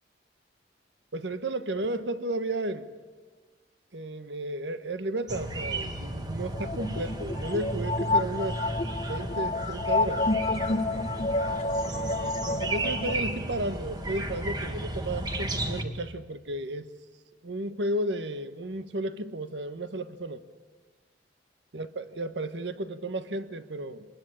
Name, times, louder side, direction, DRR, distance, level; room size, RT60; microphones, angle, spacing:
voice 1, 1.1-2.9 3.9-8.6 9.0-10.3 11.8-16.9 17.4-20.4 21.7-24.1, right 1 dB, 75° right, 1.3 m, -33 dB
sound 1, 5.3-15.8, right 1 dB, 25° right, 1.6 m, -34 dB
sound 2, 6.5-13.1, left 2 dB, 35° left, 0.8 m, -29 dB
25.5 x 21.0 x 10.0 m
head